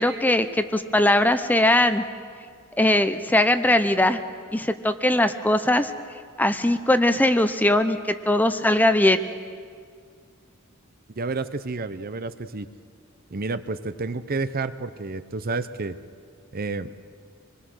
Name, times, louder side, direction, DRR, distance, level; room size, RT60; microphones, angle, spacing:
voice 1, 0.0-2.0 2.8-4.2 4.5-5.9 6.4-9.3, left 1 dB, 10° left, 10 dB, 0.7 m, -20 dB
voice 2, 11.2-12.7 13.3-15.9 16.5-16.9, right 3 dB, 45° right, 12 dB, 0.8 m, -30 dB
26.5 x 21.0 x 6.4 m, 2.1 s
head